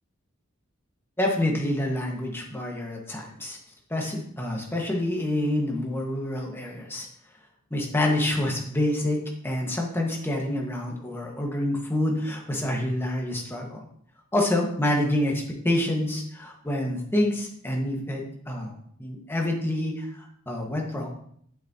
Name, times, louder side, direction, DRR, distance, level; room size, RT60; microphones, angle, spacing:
voice 1, 1.2-3.6 3.9-7.1 7.7-13.8 14.3-18.7 19.0-21.1, left 1 dB, 10° left, -1 dB, 1.5 m, -27 dB
8.3 x 8.3 x 2.9 m, 0.65 s
head